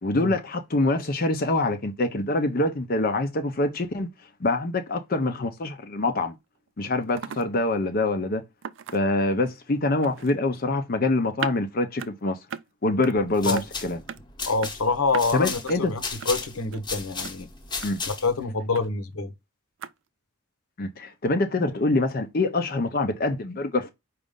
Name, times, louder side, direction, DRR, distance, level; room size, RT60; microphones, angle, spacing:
voice 1, 0.0-4.1 4.4-6.4 6.8-8.4 8.9-12.4 12.8-14.0 15.3-15.9 17.8-18.0 20.8-23.9, left 2 dB, 45° left, 0.6 m, -25 dB
sound 1, 6.2-6.3 6.6-6.7 7.0-7.5 7.8-7.9 8.6-9.3 10.0-10.4 11.4-11.5 12.0-12.1 12.5-12.7 13.0-13.2 13.6-13.7 14.1-14.2 14.6-14.7 15.1-15.2 15.7-15.8 16.2-16.3 16.7-16.8 17.2-17.3 17.8-17.9 18.7-18.9 19.8-19.9, right 7 dB, 60° right, 0.4 m, -36 dB
sound 2, 13.2-18.4, left 4 dB, 20° left, 1.0 m, -35 dB
voice 2, 14.4-17.5 18.1-19.3, left 3 dB, 85° left, 1.0 m, -26 dB
5.1 x 2.5 x 3.6 m
head